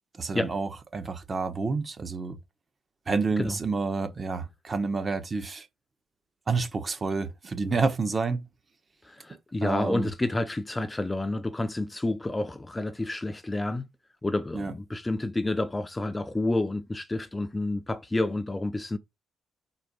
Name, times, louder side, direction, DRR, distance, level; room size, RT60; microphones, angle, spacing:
voice 1, 0.1-2.4 3.1-5.7 6.5-8.4 9.6-10.1 14.5-14.7, right 4 dB, 35° right, 1.2 m, -29 dB
voice 2, 9.0-13.9 14.2-19.0, left 2 dB, 15° left, 0.6 m, -29 dB
4.4 x 4.4 x 5.4 m
cardioid pair, 90°, 0 cm